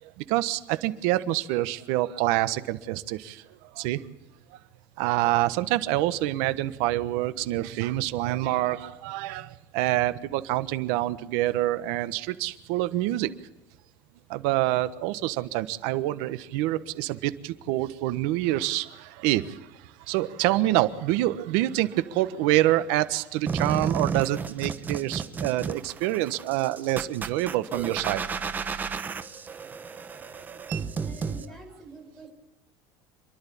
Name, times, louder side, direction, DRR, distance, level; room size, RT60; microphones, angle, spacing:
voice 1, 0.0-3.4 3.7-4.1 5.0-13.3 14.3-28.2 30.7-30.8, right 15 dB, 70° right, 13 dB, 1.3 m, -26 dB
sound 1, 23.5-31.5, right 5 dB, 20° right, 1.1 m, -32 dB
voice 2, 30.8-32.3, right 2 dB, 5° left, 2 dB, 6.2 m, -46 dB
28.0 x 11.5 x 8.6 m, 0.99 s
cardioid pair, 155°, 9 cm